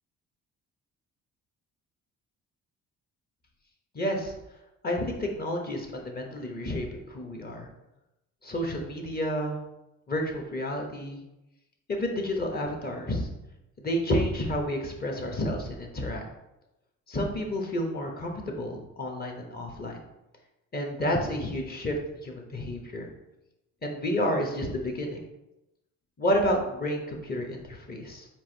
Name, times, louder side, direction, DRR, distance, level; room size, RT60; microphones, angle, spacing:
voice 1, 3.9-4.3 4.8-7.7 8.4-9.6 10.1-11.2 11.9-13.3 13.8-16.2 17.1-20.0 20.7-22.0 22.2-23.1 23.8-25.2 26.2-28.3, equal, 30° left, 2 dB, 1.0 m, -30 dB
4.6 x 2.6 x 4.4 m, 0.93 s
cardioid pair, 90°, 30 cm